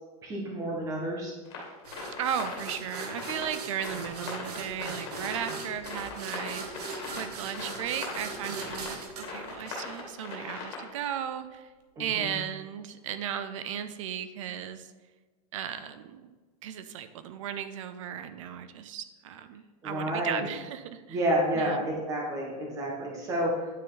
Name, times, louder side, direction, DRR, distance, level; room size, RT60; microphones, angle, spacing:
voice 1, 0.2-1.3 11.9-12.4 19.8-20.5 21.1-23.7, right 1 dB, 15° right, -1 dB, 1.6 m, -30 dB
sound 1, 1.4-11.2, left 3 dB, 40° left, 2.2 m, -40 dB
sound 2, 1.8-10.3, right 4 dB, 80° right, 1.5 m, -40 dB
voice 2, 2.2-6.8 7.2-11.7 12.0-14.9 15.5-16.3 16.6-21.2 21.5-21.8, right 9 dB, 55° right, 11 dB, 0.6 m, -36 dB
9.5 x 6.3 x 4.0 m, 1.3 s
supercardioid pair, 170°, 20 cm